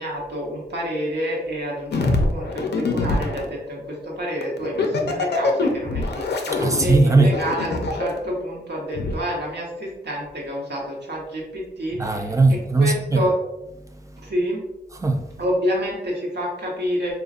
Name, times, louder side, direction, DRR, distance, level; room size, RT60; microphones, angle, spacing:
voice 1, 0.0-12.3 12.8-13.4 14.2-14.6 15.4-17.1, equal, 70° right, 1.2 m, -28 dB
sound 1, 1.9-3.4 4.4-8.2 8.9-9.1, left 3 dB, 70° left, 0.5 m, -24 dB
voice 2, 6.5-7.4 12.0-13.3 13.8-14.3 14.9-15.4, right 3 dB, 15° right, 0.4 m, -20 dB
5.0 x 2.4 x 2.4 m
wide cardioid pair, 110°, 18 cm